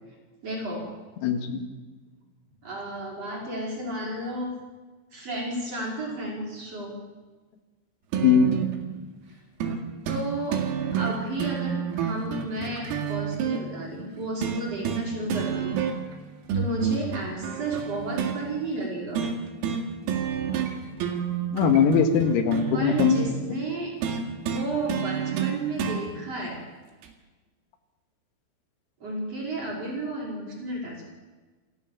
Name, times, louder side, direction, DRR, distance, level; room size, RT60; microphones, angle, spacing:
voice 1, 0.4-0.9 2.6-4.6 5.1-6.9 9.3-9.4 10.0-10.6 10.9-15.8 16.5-19.3 22.7-23.9 24.5-26.6 29.0-31.0, right 1 dB, 30° right, -2 dB, 6.0 m, -32 dB
voice 2, 1.2-1.6 8.2-8.5 21.5-23.4, left 6 dB, 90° left, 7 dB, 4.6 m, -21 dB
sound 1, 8.1-8.7 9.6-9.8 10.1-10.2 10.5-13.6 14.4-15.0 15.3-16.1 16.5-18.4 19.2-19.4 19.6-19.8 20.1-20.7 21.0-23.2 24.0-26.0 27.0-27.1, right 8 dB, 85° right, 4.8 m, -28 dB
28.0 x 14.5 x 7.3 m, 1.3 s
omnidirectional pair, 6.0 m